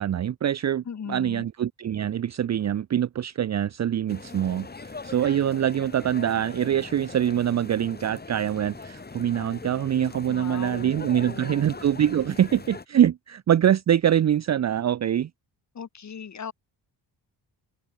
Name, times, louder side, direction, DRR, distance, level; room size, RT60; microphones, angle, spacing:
voice 1, 0.0-15.3, right 10 dB, 40° right, 0.7 m, -24 dB
voice 2, 0.9-1.5 10.3-11.7 15.7-16.5, left 7 dB, 45° left, 4.1 m, -38 dB
sound 1, 4.1-12.9, left 4 dB, 25° left, 4.7 m, -41 dB
cardioid pair, 125°, 40 cm